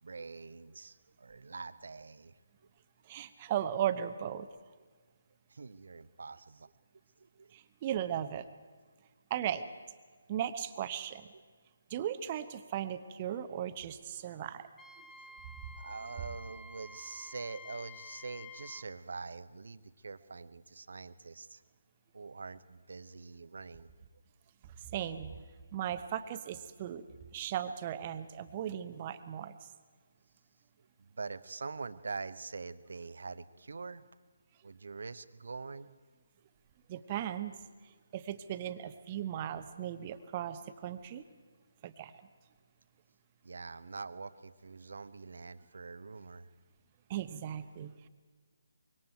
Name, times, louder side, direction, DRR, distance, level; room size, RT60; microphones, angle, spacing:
voice 1, 0.0-2.4 5.5-6.7 7.2-7.5 15.3-15.4 15.8-21.6 22.1-23.9 31.0-34.0 34.6-35.9 43.4-46.5, right 4 dB, 55° right, 14 dB, 0.9 m, -44 dB
voice 2, 3.1-4.5 7.5-8.5 9.3-9.6 10.3-11.3 11.9-14.7 24.9-25.3 25.7-27.0 27.3-29.6 36.9-37.6 38.1-41.2 41.8-42.1 47.1-48.1, right 10 dB, 25° right, 11 dB, 0.9 m, -37 dB
Wind instrument woodwind instrument, 14.8-18.9, left 3 dB, 5° left, 0.7 m, -51 dB
25.0 x 23.0 x 4.6 m, 1.5 s
figure-of-eight pair, 145°, 0 cm